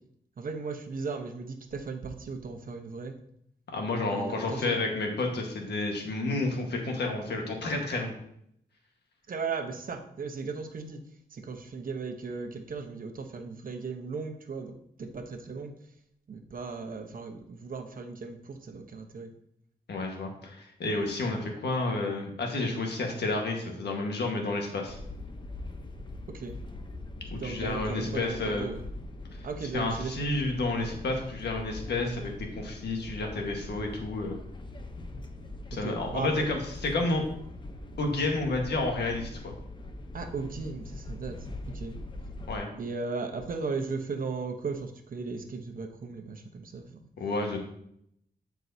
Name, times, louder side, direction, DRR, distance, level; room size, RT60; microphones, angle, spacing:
voice 1, 0.4-3.2 4.1-4.8 9.3-15.7 16.3-19.3 26.3-26.6 27.4-28.8 29.4-30.3 35.7-36.5 40.1-41.9 42.8-47.0, right 4 dB, 55° right, 5 dB, 1.0 m, -36 dB
voice 2, 3.7-8.1 19.9-25.0 27.3-28.7 29.7-34.4 35.7-37.3 38.0-39.5 42.5-42.7 47.2-47.6, left 2 dB, 85° left, 2 dB, 1.5 m, -30 dB
sound 1, 24.9-42.6, left 2 dB, 25° left, 0.8 m, -42 dB
12.0 x 4.6 x 2.7 m, 0.72 s
cardioid pair, 90°, 17 cm